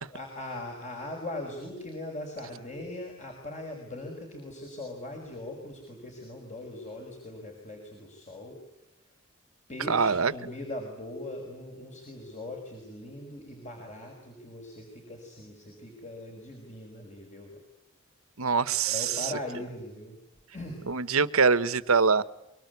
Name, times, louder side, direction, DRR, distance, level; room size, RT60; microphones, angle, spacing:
voice 1, 0.1-8.6 9.7-17.6 18.8-20.2 20.5-20.9, left 1 dB, 35° left, 2 dB, 5.9 m, -40 dB
voice 2, 9.9-10.3 18.4-19.3 20.9-22.2, right 5 dB, 90° right, 15 dB, 1.2 m, -24 dB
24.5 x 24.0 x 9.6 m, 0.87 s
head